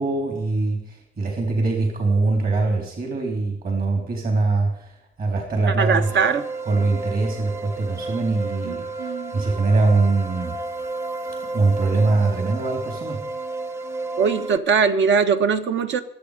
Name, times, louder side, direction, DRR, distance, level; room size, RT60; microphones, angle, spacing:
voice 1, 0.0-6.1 6.7-10.6 11.5-13.2, right 3 dB, 50° right, 1 dB, 3.8 m, -22 dB
voice 2, 5.8-6.4 8.6-9.5 14.2-16.0, right 6 dB, 70° right, 8 dB, 1.3 m, -21 dB
sound 1, 6.0-14.6, right 3 dB, 15° right, 0.7 m, -32 dB
25.0 x 8.5 x 5.1 m, 0.71 s
cardioid pair, 90°, 20 cm